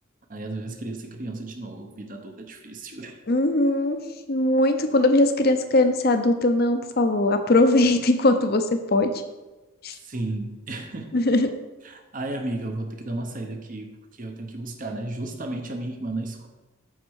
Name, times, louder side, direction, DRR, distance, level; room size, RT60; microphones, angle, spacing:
voice 1, 0.3-3.2 10.0-11.2 11.8-16.5, right 2 dB, 40° right, 4 dB, 0.8 m, -33 dB
voice 2, 3.3-4.0 4.3-9.1 9.8-9.9 11.1-11.5, left 2 dB, 45° left, 7 dB, 0.7 m, -20 dB
8.0 x 4.3 x 6.4 m, 1.1 s
head